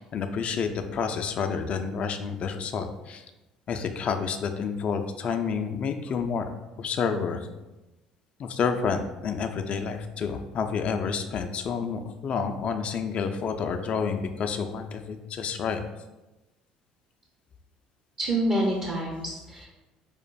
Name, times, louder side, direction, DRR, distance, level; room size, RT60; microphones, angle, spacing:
voice 1, 0.0-3.2 3.7-6.4 6.8-7.5 8.4-15.8, left 6 dB, 45° left, 6 dB, 0.3 m, -29 dB
voice 2, 18.2-19.7, right 1 dB, 40° right, -1 dB, 0.7 m, -27 dB
5.0 x 2.5 x 2.2 m, 1.0 s
hypercardioid pair, 60°, 3 cm